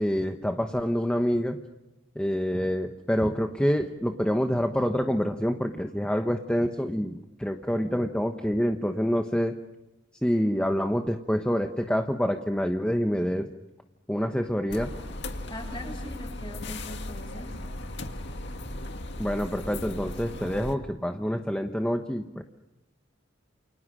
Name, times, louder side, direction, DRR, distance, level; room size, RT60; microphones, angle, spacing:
voice 1, 0.0-1.6 2.1-9.6 10.2-13.5 14.1-14.9 19.2-22.4, equal, 5° left, 5 dB, 1.1 m, -27 dB
sound 1, 14.7-20.8, left 1 dB, 60° left, 2.1 m, -37 dB
voice 2, 15.5-17.6, left 1 dB, 25° left, 3 dB, 7.4 m, -41 dB
29.0 x 29.0 x 6.3 m, 0.99 s
head